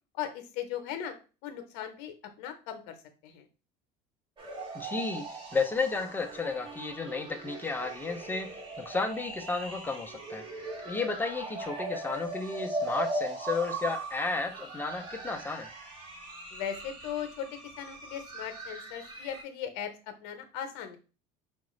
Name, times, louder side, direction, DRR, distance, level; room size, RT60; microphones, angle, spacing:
voice 1, 0.1-1.1 1.4-3.0 3.2-3.5 16.5-19.9 20.2-21.0, left 9 dB, 70° left, 7 dB, 0.7 m, -38 dB
sound 1, 4.4-19.4, right 2 dB, 30° right, 1.1 m, -39 dB
voice 2, 4.7-5.3 5.5-10.4 10.8-15.7, left 4 dB, 10° left, 6 dB, 0.4 m, -33 dB
4.9 x 2.3 x 3.1 m, 0.34 s
cardioid pair, 140°, 17 cm